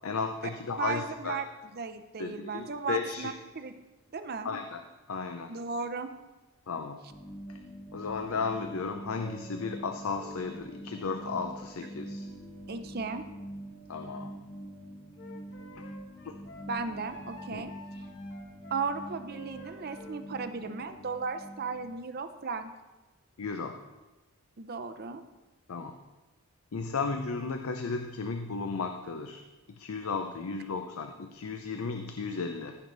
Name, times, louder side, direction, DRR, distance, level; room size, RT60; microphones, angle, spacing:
voice 1, 0.0-1.4 2.2-3.3 4.4-4.8 5.1-5.5 6.7-7.0 7.5-7.6 7.9-12.3 13.9-14.3 15.8-15.9 16.2-16.4 17.5-17.7 23.4-23.8 25.7-26.0 26.7-29.4 29.7-32.8, left 4 dB, 85° left, 6 dB, 0.6 m, -34 dB
voice 2, 0.8-1.5 1.7-3.7 4.1-4.5 5.5-6.1 12.7-13.3 16.7-17.7 18.7-22.7 24.6-25.2, right 4 dB, 45° right, 8 dB, 0.6 m, -35 dB
sound 1, 7.1-21.9, equal, 15° left, 1.1 m, -45 dB
sound 2, 9.2-13.9, equal, 40° left, 2.9 m, -55 dB
Wind instrument woodwind instrument, 15.2-20.2, equal, 60° left, 1.2 m, -50 dB
15.0 x 6.2 x 4.0 m, 1.1 s
head